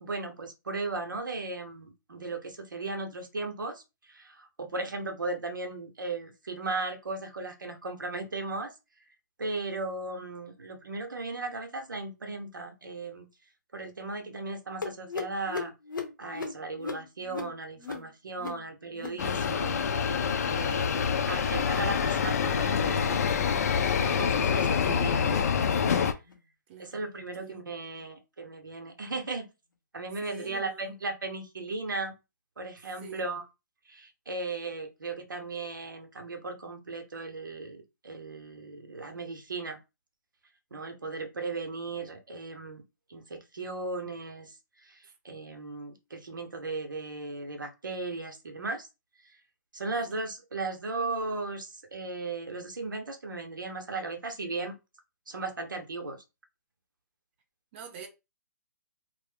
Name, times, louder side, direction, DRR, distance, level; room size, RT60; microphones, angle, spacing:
voice 1, 0.0-8.7 9.4-13.3 13.7-15.7 16.2-19.8 20.5-23.6 24.0-25.4 26.0-26.1 26.8-29.5 29.9-32.1 32.6-33.5 33.9-39.8 40.7-42.8 43.1-48.9 49.7-54.8 55.3-56.2, right 3 dB, 85° right, 0.8 m, -36 dB
sound 1, 14.8-19.9 20.1-20.5 20.8-21.2 21.5-21.9 22.2-22.6 23.0-23.3 23.8-24.1 24.6-24.8 25.4-25.6 26.2-26.4 27.1-27.2 28.0-28.1, left 4 dB, 85° left, 0.8 m, -40 dB
sound 2, 19.2-26.1, left 6 dB, 55° left, 0.4 m, -26 dB
voice 2, 26.7-27.0 27.4-27.6 30.2-30.9 33.0-33.3 49.9-50.1 57.7-58.1, right 6 dB, 35° right, 0.6 m, -46 dB
2.6 x 2.0 x 3.3 m
hypercardioid pair, 140°, 10 cm